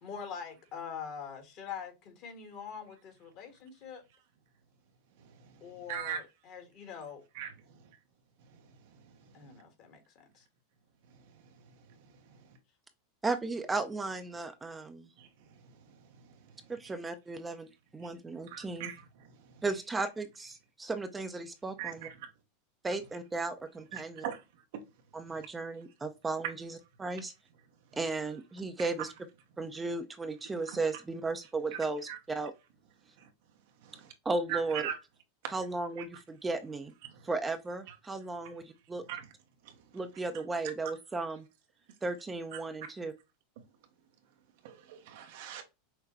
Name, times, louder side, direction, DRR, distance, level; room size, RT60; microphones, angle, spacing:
voice 1, 0.0-4.0 5.6-7.2 9.3-10.4, left 7 dB, 50° left, 1.5 m, -44 dB
voice 2, 5.9-6.2 7.3-7.5 15.2-15.3 18.5-19.0 21.8-21.9 23.9-24.4 32.1-32.2 33.9-34.1 34.5-35.0 35.4-35.5 37.0-37.1 39.1-39.2 44.6-45.6, right 9 dB, 70° right, 0.9 m, -38 dB
voice 3, 13.2-15.1 16.7-17.7 17.9-18.9 19.6-22.1 22.8-24.2 25.1-27.3 27.9-29.1 29.6-32.5 34.2-34.9 35.5-36.9 37.2-39.0 39.9-41.5 42.0-43.1, right 3 dB, 15° right, 0.6 m, -35 dB
5.9 x 2.2 x 2.8 m
hypercardioid pair, 105°, 0 cm